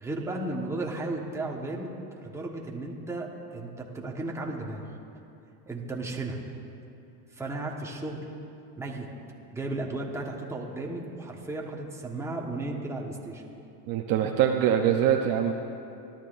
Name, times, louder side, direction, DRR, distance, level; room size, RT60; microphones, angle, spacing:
voice 1, 0.0-4.8 5.7-6.4 7.3-8.2 8.8-9.1 9.5-13.4, right 2 dB, 5° right, -2 dB, 1.3 m, -34 dB
voice 2, 13.9-15.5, right 9 dB, 45° right, 3 dB, 0.7 m, -23 dB
27.0 x 12.0 x 2.6 m, 2.8 s
supercardioid pair, 135°, 48 cm